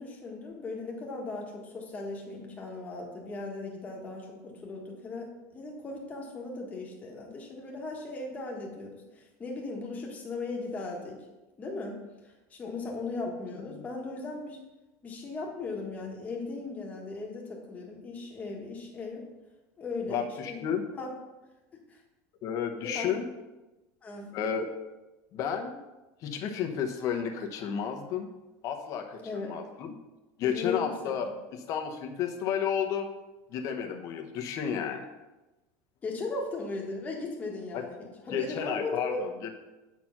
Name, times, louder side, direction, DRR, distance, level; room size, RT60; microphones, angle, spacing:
voice 1, 0.0-11.2 11.6-14.6 15.0-19.2 19.8-20.6 20.9-21.1 21.9-22.0 22.8-23.1 24.0-24.3 29.2-29.6 30.4-31.3 36.0-39.2, left 3 dB, 15° left, -1 dB, 1.5 m, -37 dB
voice 2, 20.1-20.8 22.4-23.3 24.3-24.7 25.3-25.8 26.2-28.3 28.6-29.9 30.4-33.1 33.5-35.1 37.7-37.8 38.3-39.5, left 8 dB, 40° left, 4 dB, 1.0 m, -32 dB
8.1 x 4.5 x 5.9 m, 1.1 s
cardioid pair, 165°, 9 cm